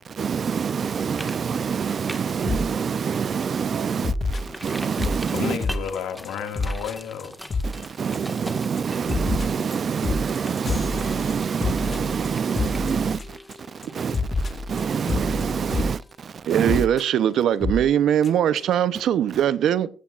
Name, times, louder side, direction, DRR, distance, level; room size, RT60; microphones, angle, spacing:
voice 1, 0.0-4.1 4.6-5.6 7.6-7.7 8.0-13.2 13.9-14.2 14.7-16.0 16.5-16.8, right 6 dB, 50° right, 0.5 m, -26 dB
sound 1, 1.2-1.4 1.7-2.5 2.9-3.0 3.4-3.5 4.3-17.9 18.2-18.3, equal, ahead, 1.7 m, -42 dB
sound 2, 2.4-2.7 3.1-3.3 4.0-5.2 5.6-6.0 6.2-6.3 6.5-6.9 7.2-7.3 7.5-7.8 8.1-8.5 8.8-13.5 13.8-13.9 14.1-15.9 16.7-17.0 17.6-17.8 18.2-18.3 18.6-18.7, left 3 dB, 40° left, 2.0 m, -28 dB
voice 2, 5.3-7.6 8.0-8.1, left 8 dB, 90° left, 2.1 m, -32 dB
voice 3, 16.5-19.9, right 10 dB, 75° right, 0.8 m, -21 dB
16.0 x 15.0 x 2.5 m
cardioid pair, 90°, 0 cm